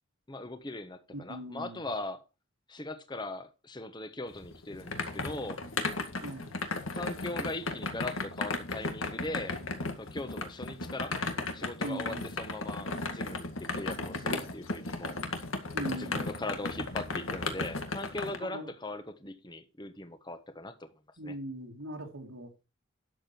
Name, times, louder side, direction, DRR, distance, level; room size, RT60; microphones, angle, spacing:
voice 1, 0.3-2.2 2.7-5.6 6.9-9.6 10.0-11.2 11.5-15.2 15.9-20.9 21.2-21.4, left 2 dB, 20° left, 1.2 m, -40 dB
voice 2, 1.1-1.8 6.2-6.6 11.8-12.3 15.7-16.4 18.4-18.7 21.2-22.5, right 1 dB, 85° right, 2.4 m, -40 dB
sound 1, 4.3-18.4, left 3 dB, 80° left, 2.0 m, -35 dB
12.5 x 7.6 x 4.5 m
head